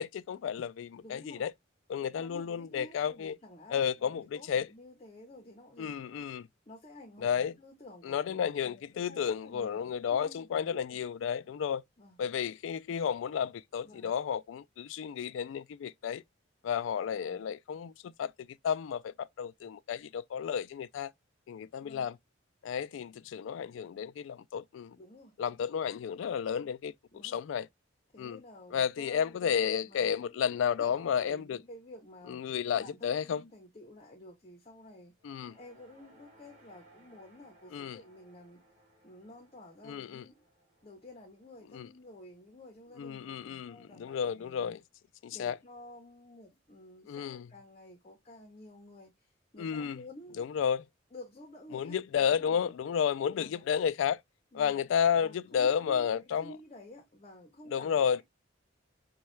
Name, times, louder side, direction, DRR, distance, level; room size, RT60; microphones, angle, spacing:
voice 1, 0.0-1.5 1.9-3.3 3.7-4.7 5.8-6.5 7.2-7.5 8.0-11.8 12.2-16.2 16.6-18.3 18.6-21.1 21.5-22.2 22.6-25.0 25.4-26.9 27.2-27.7 28.2-28.4 28.7-31.6 32.3-33.4 35.2-35.6 37.7-38.0 39.8-40.2 41.7-41.9 43.0-44.8 45.2-45.6 47.1-47.5 49.6-50.0 50.4-50.8 51.7-54.2 54.5-56.5 57.7-58.2, left 7 dB, 75° left, 0.3 m, -32 dB
voice 2, 1.0-1.4 2.0-6.2 6.7-11.0 12.0-12.2 13.8-14.1 17.1-17.4 21.8-22.1 25.0-25.3 27.1-27.4 28.1-30.3 30.6-32.4 32.7-35.1 35.6-38.6 39.0-40.5 40.8-44.8 45.3-50.5 51.1-52.7 53.3-53.6 54.5-54.8 55.2-56.1 56.4-58.2, left 1 dB, 35° left, 0.7 m, -52 dB
sound 1, 35.2-43.5, right 1 dB, 40° right, 2.1 m, -64 dB
5.3 x 2.3 x 3.0 m
head